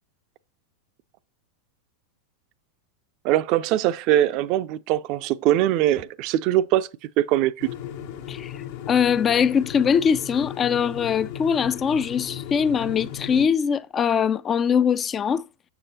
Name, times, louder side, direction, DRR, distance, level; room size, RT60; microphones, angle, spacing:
voice 1, 3.2-6.9 7.2-7.7, right 13 dB, 45° right, 0.4 m, -22 dB
sound 1, 7.6-13.5, left 10 dB, 55° left, 0.7 m, -36 dB
voice 2, 8.3-15.4, left 7 dB, 25° left, 0.3 m, -22 dB
7.0 x 6.8 x 2.8 m
hypercardioid pair, 100°, 0 cm